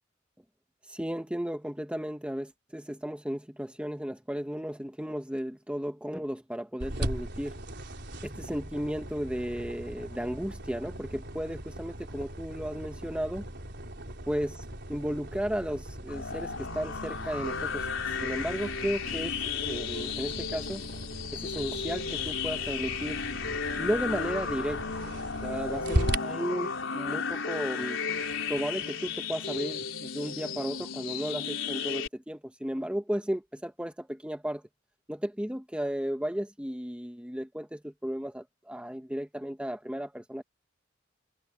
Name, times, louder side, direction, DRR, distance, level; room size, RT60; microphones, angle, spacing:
voice 1, 0.9-7.6 8.2-13.4 14.3-14.6 14.9-17.9 18.2-19.3 19.6-20.8 21.3-23.2 23.8-24.8 25.4-28.0 28.5-34.6 35.1-40.4, equal, 5° right, 1.2 m, -34 dB
sound 1, 6.8-26.2, right 1 dB, 60° right, 4.3 m, -38 dB
sound 2, 16.1-32.1, left 5 dB, 75° left, 4.2 m, -34 dB
head